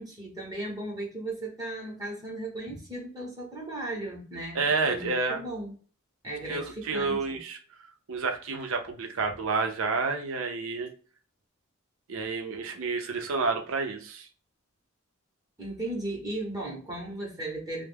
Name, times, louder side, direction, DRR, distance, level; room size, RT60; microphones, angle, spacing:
voice 1, 0.0-5.7 6.2-7.2 15.6-17.8, right 1 dB, 15° right, -3 dB, 0.8 m, -36 dB
voice 2, 4.5-5.4 6.5-7.6 8.1-10.9 12.1-14.3, right 4 dB, 65° right, 5 dB, 0.5 m, -29 dB
2.2 x 2.1 x 3.2 m, 0.41 s
head